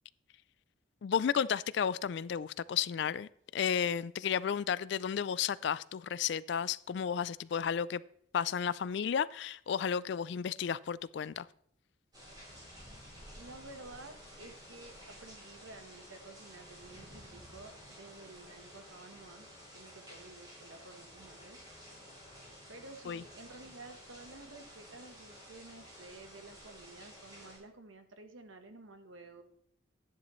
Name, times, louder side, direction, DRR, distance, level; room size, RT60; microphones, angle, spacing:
voice 1, 1.0-8.0 8.3-11.5 23.1-23.2, left 7 dB, 60° left, 0.3 m, -33 dB
sound 1, 12.1-27.6, equal, 20° right, 5.0 m, -53 dB
voice 2, 13.4-21.6 22.7-29.4, right 2 dB, 80° right, 1.2 m, -52 dB
12.0 x 10.5 x 3.1 m
head